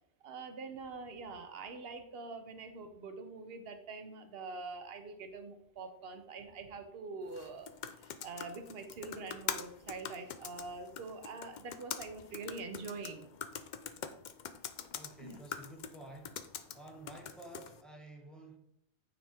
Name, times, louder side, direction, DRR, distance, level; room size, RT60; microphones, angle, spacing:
voice 1, 0.2-7.7 8.0-13.3 15.2-15.4, right 3 dB, 55° right, 7 dB, 1.0 m, -45 dB
sound 1, 7.3-17.8, left 7 dB, 60° left, 0.5 m, -44 dB
voice 2, 14.9-16.4 16.7-18.6, right 2 dB, ahead, 1 dB, 1.0 m, -51 dB
9.2 x 3.5 x 4.4 m, 0.75 s
omnidirectional pair, 1.3 m